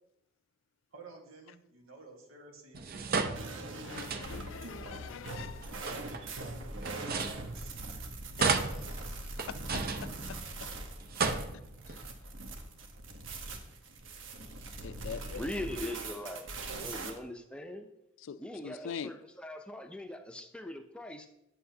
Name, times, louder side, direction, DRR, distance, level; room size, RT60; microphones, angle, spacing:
voice 1, 0.9-3.7 4.3-7.8, right 2 dB, 85° right, 1.7 m, -53 dB
sound 1, 2.7-4.6 5.6-8.0 8.4-10.6 11.0-12.0, right 4 dB, 45° right, 0.6 m, -34 dB
sound 2, 3.3-17.1, right 2 dB, 65° right, 1.1 m, -42 dB
voice 2, 3.8-5.6 8.4-10.7 11.9-12.0 14.8-15.4 18.3-19.1, left 7 dB, 65° left, 0.4 m, -43 dB
voice 3, 15.3-16.5 16.8-17.9 18.4-21.3, left 1 dB, 5° left, 0.6 m, -41 dB
9.5 x 7.8 x 2.8 m
head